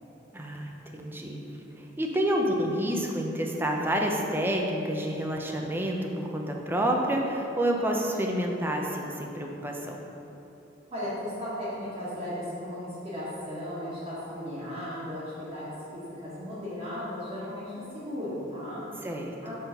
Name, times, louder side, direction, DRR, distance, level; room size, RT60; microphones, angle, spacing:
voice 1, 0.3-1.4 1.8-10.0 19.0-19.5, equal, 10° right, 0 dB, 0.6 m, -29 dB
voice 2, 10.9-18.8 19.4-19.5, left 1 dB, 30° right, -11 dB, 1.4 m, -36 dB
6.6 x 3.7 x 5.7 m, 3.0 s
head